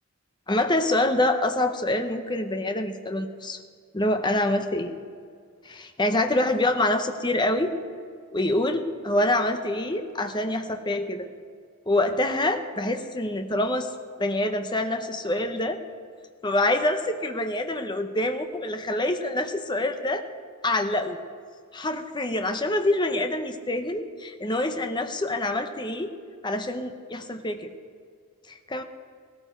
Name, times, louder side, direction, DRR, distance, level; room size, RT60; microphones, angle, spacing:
voice 1, 0.5-3.6 3.9-4.9 5.7-7.7 8.3-11.3 11.9-13.9 14.2-15.8 16.4-20.3 20.6-21.2 21.7-26.1 26.4-27.7 28.5-28.8, left 1 dB, 20° left, 7 dB, 0.8 m, -26 dB
17.0 x 14.0 x 4.5 m, 2.2 s
head